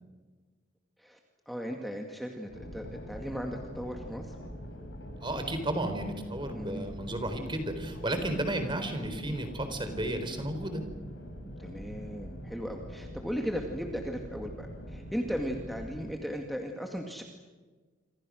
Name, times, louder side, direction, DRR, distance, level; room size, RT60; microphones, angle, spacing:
voice 1, 1.5-4.3 6.5-6.9 11.6-17.2, equal, ahead, 2 dB, 2.2 m, -37 dB
sound 1, 2.5-16.1, equal, 80° left, 5.5 m, -43 dB
voice 2, 5.2-10.8, right 1 dB, 25° right, 7 dB, 4.2 m, -33 dB
27.5 x 27.0 x 6.5 m, 1.3 s
head